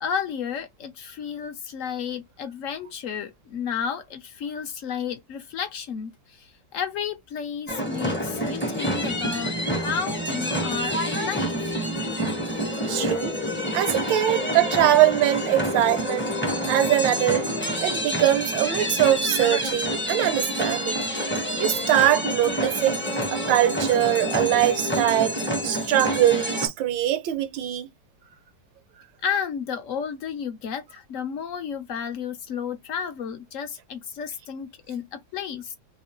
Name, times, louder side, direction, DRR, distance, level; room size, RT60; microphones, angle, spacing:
voice 1, 0.0-11.8 29.2-35.8, left 7 dB, 65° left, 0.8 m, -32 dB
sound 1, 7.7-26.7, equal, 10° left, 0.5 m, -27 dB
voice 2, 12.9-13.4 13.7-16.3 16.7-17.5 17.8-21.0 21.6-23.0 23.3-25.4 25.6-27.9, right 13 dB, 75° right, 1.3 m, -22 dB
3.1 x 2.5 x 4.3 m
omnidirectional pair, 2.1 m